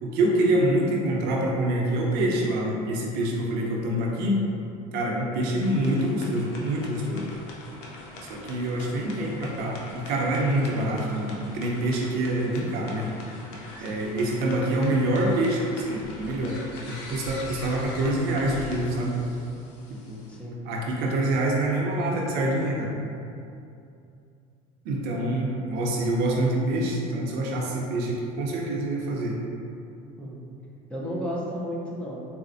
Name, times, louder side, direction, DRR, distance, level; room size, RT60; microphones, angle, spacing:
voice 1, 0.0-4.4 4.9-7.3 8.3-13.1 13.8-16.6 16.9-19.2 19.9-20.2 20.6-23.0 24.8-29.4, right 1 dB, 70° right, -2 dB, 0.6 m, -26 dB
voice 2, 5.3-5.6 13.8-14.1 20.3-20.6 30.2-30.4 30.9-32.3, equal, 5° left, -5 dB, 0.6 m, -34 dB
sound 1, 5.6-20.4, left 2 dB, 80° left, 0.6 m, -42 dB
4.1 x 2.0 x 2.5 m, 2.6 s
cardioid pair, 115°, 17 cm